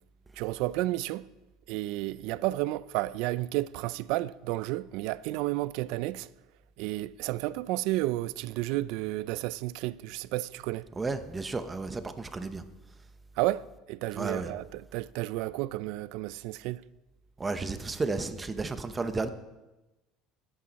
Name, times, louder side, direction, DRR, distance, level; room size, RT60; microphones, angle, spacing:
voice 1, 0.4-1.3 1.7-6.3 6.8-10.9 13.4-16.8, right 17 dB, 70° right, 0.4 m, -32 dB
voice 2, 11.0-12.6 14.2-14.5 17.4-19.3, right 3 dB, 15° right, 0.8 m, -32 dB
20.5 x 8.8 x 4.1 m
cardioid pair, 155°, 0 cm